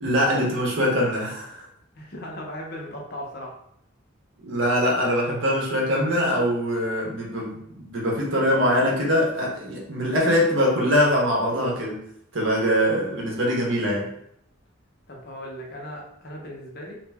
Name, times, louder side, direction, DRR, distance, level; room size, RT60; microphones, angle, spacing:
voice 1, 0.0-1.7 4.4-12.0 12.3-14.1, equal, 65° right, -2 dB, 1.0 m, -23 dB
voice 2, 1.9-3.5 15.1-17.0, equal, 50° left, -1 dB, 0.8 m, -37 dB
2.8 x 2.5 x 3.4 m, 0.73 s
head